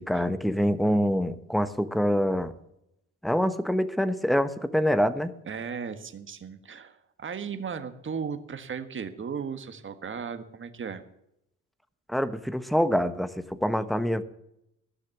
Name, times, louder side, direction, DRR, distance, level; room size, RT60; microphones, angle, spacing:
voice 1, 0.0-2.5 3.2-5.3 12.1-14.2, equal, ahead, 12 dB, 1.0 m, -25 dB
voice 2, 5.4-11.0, right 6 dB, 40° right, 9 dB, 1.5 m, -36 dB
15.5 x 6.4 x 8.4 m, 0.81 s
cardioid pair, 90°, 30 cm